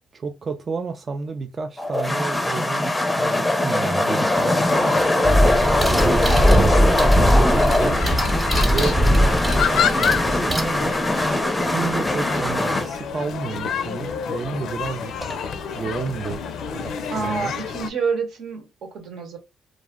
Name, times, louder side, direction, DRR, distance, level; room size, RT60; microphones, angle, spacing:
voice 1, 0.1-5.0 5.7-8.0 8.6-9.0 9.7-15.2 15.7-16.4 16.7-17.5, right 5 dB, 40° right, 0.3 m, -31 dB
sound 1, 1.8-12.9, left 1 dB, 15° left, 0.5 m, -22 dB
sound 2, 4.3-17.9, left 7 dB, 70° left, 0.4 m, -29 dB
sound 3, 5.2-11.2 13.7-13.8 15.2-15.4 15.8-16.7, equal, 15° right, 0.8 m, -20 dB
voice 2, 17.1-19.4, right 5 dB, 75° right, 0.9 m, -28 dB
2.4 x 2.0 x 3.5 m
cardioid pair, 90°, 0 cm